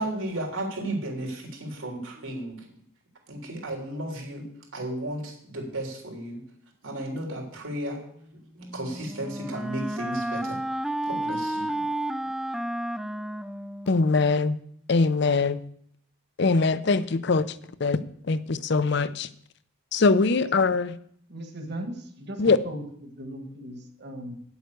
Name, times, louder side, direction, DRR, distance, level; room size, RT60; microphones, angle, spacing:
voice 1, 0.0-2.7 3.3-6.4 6.8-8.0 8.5-10.6 11.1-11.9, right 1 dB, 85° right, 1 dB, 3.4 m, -34 dB
Wind instrument woodwind instrument, 8.6-14.4, right 1 dB, ahead, 0.4 m, -32 dB
voice 2, 13.9-14.6 14.9-15.6 16.4-19.3 19.9-21.0 22.4-22.6, left 4 dB, 55° left, 15 dB, 0.6 m, -23 dB
voice 3, 21.3-24.3, right 1 dB, 55° right, 5 dB, 1.6 m, -38 dB
9.5 x 8.0 x 6.7 m, 0.67 s
head